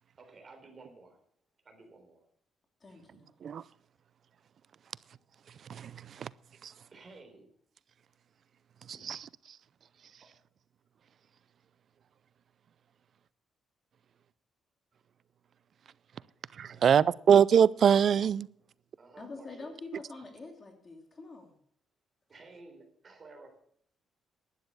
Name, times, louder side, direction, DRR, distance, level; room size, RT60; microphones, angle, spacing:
voice 1, 0.2-1.2 1.6-2.2 4.8-5.0 6.9-7.5 9.0-9.1 10.2-10.3 16.7-17.1 19.0-19.7 22.3-23.6, right 3 dB, 35° right, 3.9 m, -54 dB
voice 2, 2.8-3.3 19.2-21.6, left 3 dB, 30° left, 2.7 m, -46 dB
voice 3, 16.6-18.5, right 8 dB, 55° right, 0.4 m, -23 dB
11.5 x 9.5 x 6.6 m
cardioid pair, 120°, 0 cm